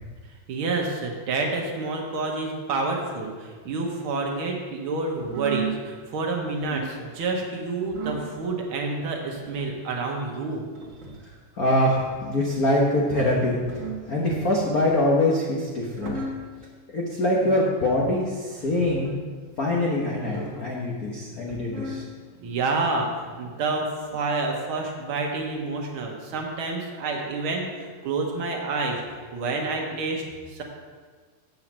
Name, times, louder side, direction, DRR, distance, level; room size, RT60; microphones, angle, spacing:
voice 1, 0.5-10.6 22.4-29.0 29.3-30.6, right 3 dB, 55° right, 1 dB, 1.6 m, -28 dB
sound 1, 5.2-5.8 6.5-6.9 7.8-8.3 9.3-9.7 10.8-11.3 12.4-12.8 13.5-14.1 14.7-15.2 15.8-16.5 17.2-17.7 18.6-19.2 20.1-20.7 21.4-22.0 22.7-23.2 24.0-24.2, right 4 dB, 40° right, 1.1 m, -36 dB
voice 2, 11.6-13.6 14.1-16.1 16.9-19.1 19.6-22.0, left 1 dB, 75° left, -3 dB, 0.8 m, -23 dB
7.9 x 5.8 x 7.3 m, 1.5 s
omnidirectional pair, 3.5 m